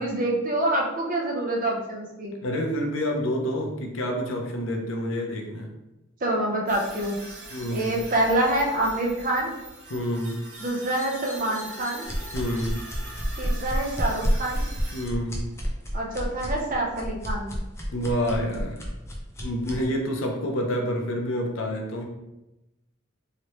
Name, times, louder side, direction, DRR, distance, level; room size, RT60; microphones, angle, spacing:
voice 1, 0.0-2.3 6.2-7.2 7.7-9.5 10.6-12.0 13.4-14.6 15.9-17.6, right 1 dB, 40° right, -1 dB, 0.6 m, -26 dB
voice 2, 2.4-5.7 7.5-7.9 9.9-10.4 12.3-12.8 14.9-15.4 17.9-18.8 19.4-22.0, equal, 60° left, 1 dB, 0.6 m, -28 dB
sound 1, 6.7-15.0, right 1 dB, 85° right, 1.4 m, -42 dB
sound 2, 12.0-19.9, equal, 15° left, 0.5 m, -30 dB
3.0 x 2.9 x 3.0 m, 0.95 s
head